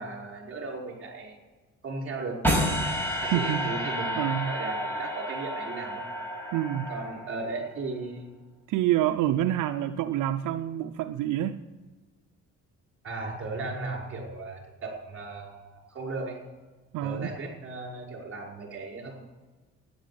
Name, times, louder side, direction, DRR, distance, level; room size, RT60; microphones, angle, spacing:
voice 1, 0.0-1.4 1.8-2.8 3.2-6.1 6.9-8.3 13.0-16.4 17.0-19.2, right 3 dB, 45° right, 0 dB, 5.4 m, -36 dB
sound 1, 2.4-7.6, equal, 5° left, 5.8 m, -30 dB
voice 2, 3.3-3.8 4.2-4.5 6.5-6.9 8.7-11.6 16.9-17.3, right 12 dB, 85° right, 8 dB, 0.7 m, -27 dB
12.5 x 10.5 x 8.7 m, 1.3 s
cardioid pair, 90°, 30 cm